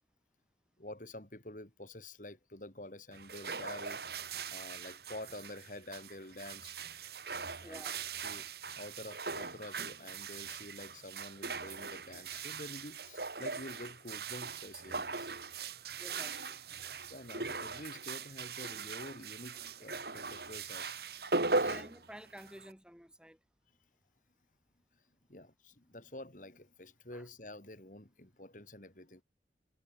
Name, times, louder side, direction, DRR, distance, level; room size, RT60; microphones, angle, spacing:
voice 1, 0.8-4.0 4.5-6.8 7.6-7.8 8.2-15.3 17.0-21.0 21.4-21.8 24.9-25.0 25.3-29.2, left 1 dB, 45° left, 3.6 m, -48 dB
sound 1, 3.1-22.7, right 4 dB, 60° right, 2.8 m, -40 dB
voice 2, 7.6-7.9 16.0-16.6 16.9-17.1 21.6-23.4 27.1-27.3, equal, 5° right, 6.9 m, -52 dB
head